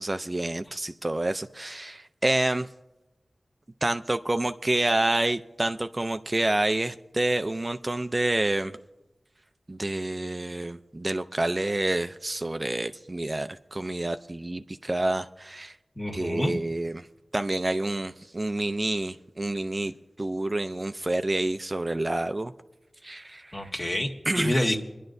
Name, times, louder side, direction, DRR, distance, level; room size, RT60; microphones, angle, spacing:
voice 1, 0.0-2.7 3.8-8.7 9.7-15.7 16.1-17.1 17.3-22.5 23.0-23.7 24.3-24.6, right 2 dB, 35° right, 9 dB, 0.4 m, -28 dB
voice 2, 16.0-16.5 23.5-24.8, left 1 dB, 35° left, 0 dB, 1.8 m, -28 dB
27.0 x 11.0 x 2.6 m, 0.99 s
wide cardioid pair, 50°, 0 cm